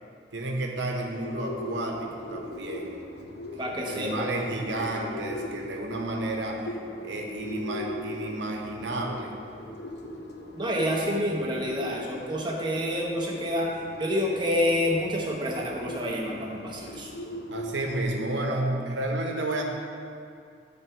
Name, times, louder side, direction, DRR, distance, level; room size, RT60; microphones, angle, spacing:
voice 1, 0.3-3.0 3.5-6.8 7.0-9.3 17.5-19.6, right 2 dB, 80° right, 1 dB, 0.9 m, -31 dB
Bird, 1.0-18.0, left 1 dB, 60° left, 0.7 m, -40 dB
voice 2, 3.6-4.3 10.5-13.7 14.0-17.1, equal, 25° right, -2 dB, 0.8 m, -28 dB
10.0 x 3.4 x 4.5 m, 2.4 s
head